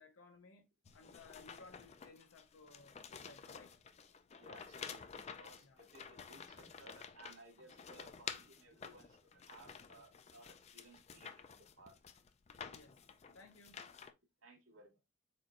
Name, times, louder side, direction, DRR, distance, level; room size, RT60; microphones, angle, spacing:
voice 1, 0.0-3.8 5.6-5.8 12.7-13.8, left 3 dB, 70° left, 0.7 m, -60 dB
sound 1, 0.8-14.1, left 6 dB, 30° left, 0.3 m, -51 dB
voice 2, 4.4-12.0 14.4-14.9, right 2 dB, 75° right, 2.1 m, -60 dB
4.4 x 4.1 x 2.4 m
head